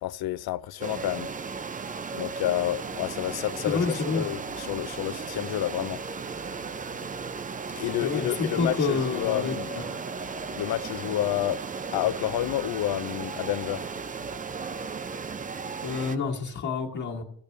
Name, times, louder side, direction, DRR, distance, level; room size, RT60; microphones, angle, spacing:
voice 1, 0.0-1.3 2.1-6.0 7.7-9.7 10.5-11.6 11.9-13.9, left 13 dB, 70° left, 0.5 m, -29 dB
sound 1, 0.8-16.2, right 5 dB, 20° right, 0.4 m, -35 dB
voice 2, 3.6-4.2 8.0-10.0 15.8-17.2, left 4 dB, 45° left, 1.5 m, -29 dB
15.0 x 6.7 x 3.2 m
cardioid pair, 100°, 40 cm